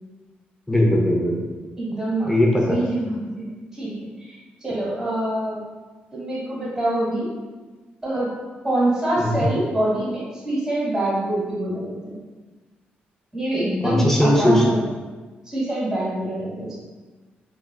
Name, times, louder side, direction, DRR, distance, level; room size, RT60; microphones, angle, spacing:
voice 1, 0.7-1.6 2.2-2.8 9.2-9.5 13.8-14.7, left 1 dB, 10° left, -2 dB, 0.6 m, -19 dB
voice 2, 1.8-2.3 2.7-5.6 6.1-7.3 8.0-8.3 8.6-12.2 13.3-14.8 15.5-16.8, right 1 dB, 10° right, -8 dB, 1.3 m, -25 dB
3.2 x 2.3 x 2.3 m, 1.3 s
cardioid pair, 90°, 4 cm